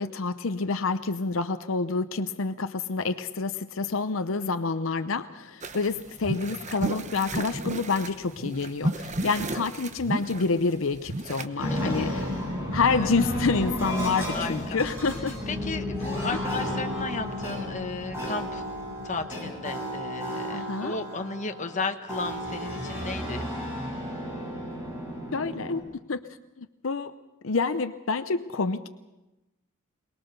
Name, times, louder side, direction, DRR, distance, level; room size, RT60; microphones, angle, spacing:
voice 1, 0.0-12.2 12.7-15.4 16.3-16.4 20.5-21.0 25.3-25.8 26.1-26.2 26.6-27.1 27.4-28.9, left 4 dB, 70° left, 10 dB, 0.7 m, -28 dB
sound 1, 5.6-11.5, right 1 dB, 35° right, 1.0 m, -33 dB
voice 2, 11.6-12.4 12.9-13.1 14.3-14.6 15.5-18.6 19.0-23.5, left 3 dB, 35° left, 6 dB, 1.2 m, -34 dB
sound 2, 11.6-25.8, equal, 10° right, 7.9 m, -32 dB
22.5 x 20.5 x 6.8 m, 1.0 s
head